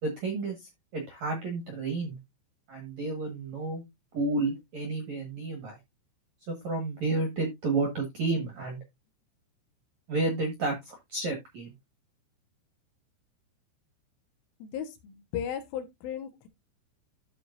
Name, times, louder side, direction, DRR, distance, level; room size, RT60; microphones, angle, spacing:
voice 1, 0.0-2.2 2.7-3.8 4.1-5.8 6.5-8.8 10.1-11.7, right 3 dB, 60° right, 1.9 m, -31 dB
voice 2, 14.6-16.5, left 9 dB, 80° left, 3.7 m, -36 dB
13.5 x 5.2 x 2.6 m
omnidirectional pair, 5.8 m